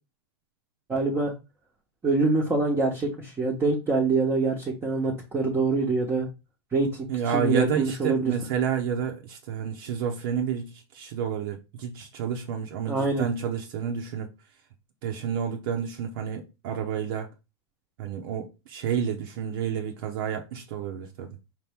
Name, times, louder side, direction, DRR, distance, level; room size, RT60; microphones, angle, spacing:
voice 1, 0.9-1.3 2.0-6.3 6.7-7.1 7.3-8.3 12.9-13.3, right 3 dB, 20° right, 1.0 m, -25 dB
voice 2, 7.1-14.3 15.0-17.3 18.0-21.4, right 7 dB, 60° right, 0.8 m, -30 dB
5.0 x 2.9 x 3.5 m
hypercardioid pair, 125°, 13 cm